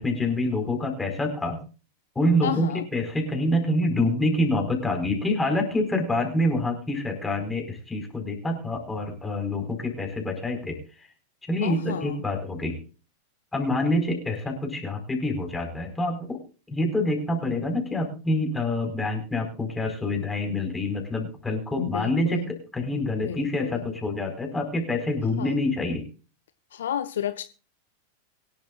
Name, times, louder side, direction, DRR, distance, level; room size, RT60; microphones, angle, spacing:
voice 1, 0.0-1.6 2.1-11.1 11.4-12.8 13.5-16.4 16.7-26.1, left 1 dB, 10° left, 5.0 m, -26 dB
voice 2, 2.4-2.8 11.6-12.2 21.8-22.5 23.2-23.9 25.4-25.5 26.7-27.4, left 10 dB, 60° left, 0.7 m, -32 dB
24.0 x 11.0 x 2.5 m
figure-of-eight pair, 90°, 0 cm